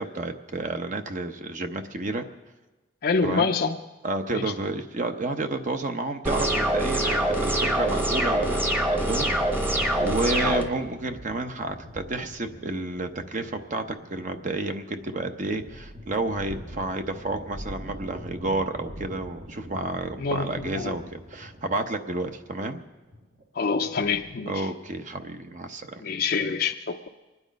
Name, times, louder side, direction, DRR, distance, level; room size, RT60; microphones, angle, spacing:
voice 1, 0.0-2.3 3.2-3.5 4.0-8.6 8.9-22.8 24.5-26.0, right 2 dB, 45° right, 6 dB, 0.8 m, -31 dB
voice 2, 3.0-3.8 4.3-4.5 10.4-10.6 20.2-20.9 23.5-24.7 26.0-27.1, left 5 dB, 55° left, 4 dB, 0.5 m, -26 dB
sound 1, 6.3-10.6, right 1 dB, 10° right, 1.0 m, -24 dB
sound 2, 8.4-24.6, equal, 60° right, 1.5 m, -44 dB
24.5 x 9.8 x 5.2 m, 1.2 s
head